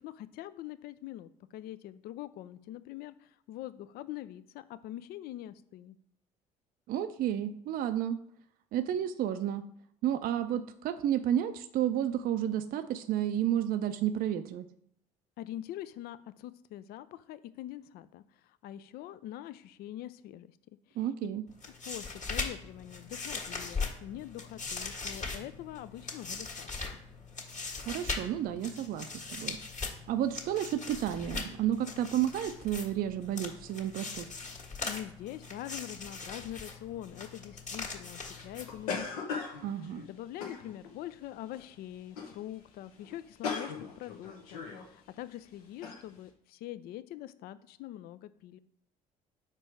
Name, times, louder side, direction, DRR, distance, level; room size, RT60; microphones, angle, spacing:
voice 1, 0.0-5.9 15.4-18.2 18.6-20.5 20.9-21.0 21.8-26.5 34.8-39.3 39.6-39.8 40.1-48.6, left 13 dB, 60° left, 15 dB, 0.4 m, -44 dB
voice 2, 6.9-8.2 8.7-9.6 10.0-14.7 21.0-21.4 27.9-29.1 29.4-29.6 30.1-34.3 39.6-40.1, right 11 dB, 55° right, 10 dB, 0.4 m, -31 dB
sound 1, 21.5-39.1, left 4 dB, 40° left, 1.7 m, -40 dB
sound 2, 38.3-41.0 41.5-41.8 42.1-42.4 42.7-42.8 43.0-44.9 45.3-45.4 45.8-46.0, left 5 dB, 85° left, 1.0 m, -39 dB
5.1 x 4.5 x 4.6 m, 0.72 s
hypercardioid pair, 60°, 18 cm